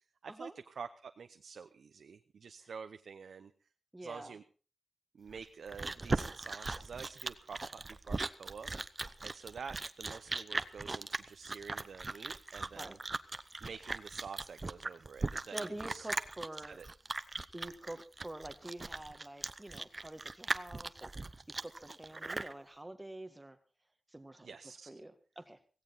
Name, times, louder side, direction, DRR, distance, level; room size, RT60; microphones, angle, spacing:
voice 1, 0.2-3.5 4.0-4.4 5.1-8.7 9.2-13.0 13.6-16.1 16.7-16.9 24.4-24.9, right 6 dB, 85° right, 8 dB, 0.8 m, -48 dB
voice 2, 3.9-4.3 12.8-13.0 15.5-16.8 17.5-21.3 21.6-23.6 24.1-24.5 24.9-25.6, right 1 dB, 15° right, 8 dB, 1.8 m, -47 dB
Chewing mastication, 5.3-22.5, right 3 dB, 30° right, 0.8 m, -39 dB
16.5 x 16.5 x 4.1 m, 0.36 s
wide cardioid pair, 100°, 0 cm